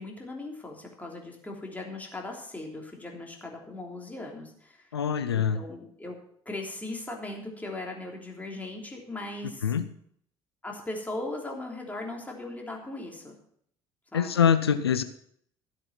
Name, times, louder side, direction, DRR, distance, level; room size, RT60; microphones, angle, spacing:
voice 1, 0.0-5.0 5.3-6.2 6.4-9.7 10.6-13.3 14.1-14.4, left 2 dB, 10° left, 0 dB, 3.3 m, -38 dB
voice 2, 4.9-5.6 9.6-9.8 14.1-15.0, left 8 dB, 80° left, 12 dB, 0.6 m, -24 dB
14.0 x 7.8 x 5.8 m, 0.65 s
figure-of-eight pair, 55°, 13 cm